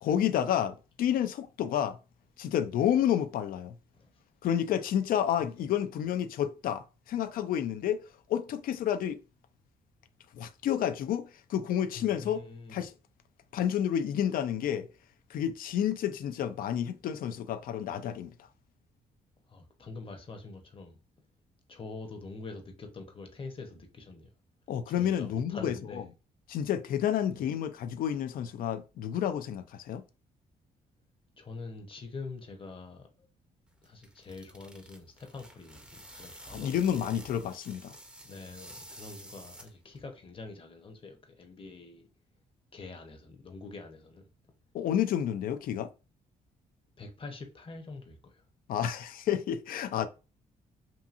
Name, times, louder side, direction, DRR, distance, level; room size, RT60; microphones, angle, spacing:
voice 1, 0.0-2.0 2.4-3.7 4.4-8.0 8.3-9.2 10.3-12.4 12.7-12.9 13.5-14.9 15.3-18.3 24.7-25.7 26.5-30.0 36.5-38.0 44.7-45.9 48.7-50.1, left 10 dB, 70° left, 0.4 m, -30 dB
voice 2, 11.9-12.8 19.5-21.0 21.7-24.3 24.9-26.1 27.3-27.4 31.4-33.3 33.8-36.8 38.2-42.1 42.7-44.3 47.0-48.4, left 3 dB, 35° left, 0.8 m, -45 dB
sound 1, 33.7-40.0, right 1 dB, 5° right, 0.6 m, -50 dB
2.8 x 2.6 x 2.4 m
cardioid pair, 75°, 15 cm